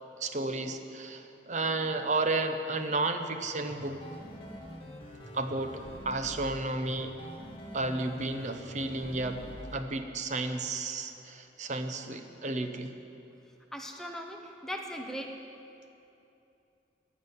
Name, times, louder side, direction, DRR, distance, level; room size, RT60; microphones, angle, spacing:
voice 1, 0.2-4.2 5.3-7.1 7.7-9.4 9.7-12.9, right 2 dB, 40° right, 7 dB, 0.8 m, -32 dB
sound 1, 3.4-9.8, equal, 30° left, 1.7 m, -45 dB
voice 2, 13.7-15.4, equal, 5° left, 2 dB, 0.9 m, -39 dB
14.5 x 6.1 x 9.5 m, 2.8 s
head